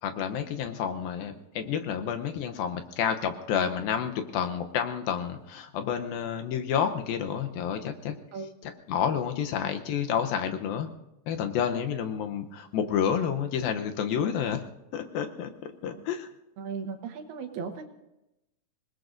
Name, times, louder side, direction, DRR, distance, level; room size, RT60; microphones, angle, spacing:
voice 1, 0.0-8.2 8.6-10.9 11.3-14.6 14.9-16.3, left 8 dB, 75° left, 6 dB, 2.6 m, -30 dB
voice 2, 16.6-17.9, right 5 dB, 85° right, 5 dB, 3.3 m, -36 dB
26.5 x 19.5 x 2.6 m, 0.91 s
omnidirectional pair, 4.4 m